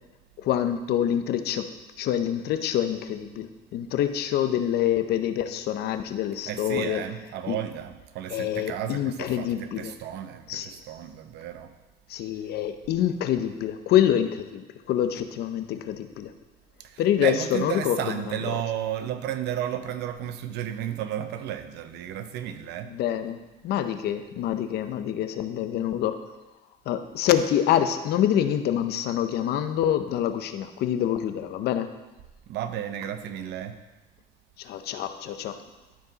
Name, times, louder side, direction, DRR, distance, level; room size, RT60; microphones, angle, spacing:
voice 1, 0.4-1.7 2.0-7.0 7.5-7.6 8.3-9.9 10.5-10.7 12.1-16.3 17.0-18.5 22.9-23.4 23.6-26.2 26.9-31.9 34.6-35.6, left 10 dB, 75° left, 9 dB, 0.7 m, -26 dB
voice 2, 6.5-11.7 16.8-22.9 32.5-33.8, right 10 dB, 80° right, 9 dB, 0.7 m, -33 dB
13.0 x 4.7 x 4.0 m, 1.1 s
cardioid pair, 110°, 17 cm